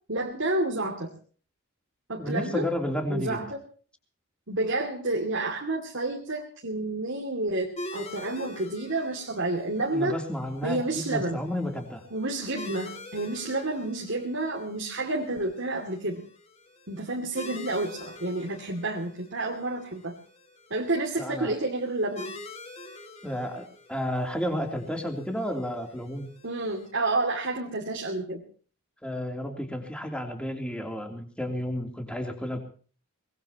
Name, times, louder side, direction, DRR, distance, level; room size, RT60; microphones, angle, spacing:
voice 1, 0.1-1.1 2.1-2.6 3.1-3.6 4.5-10.2 10.6-11.4 12.1-16.2 16.9-20.1 20.7-22.3 26.4-28.4, right 2 dB, 60° right, -1 dB, 2.6 m, -30 dB
voice 2, 2.2-3.5 9.9-12.0 21.2-21.5 23.2-26.3 29.0-32.6, equal, 5° left, 3 dB, 3.1 m, -32 dB
sound 1, 7.8-26.9, left 2 dB, 30° left, 2.2 m, -46 dB
23.5 x 20.5 x 3.0 m, 0.42 s
head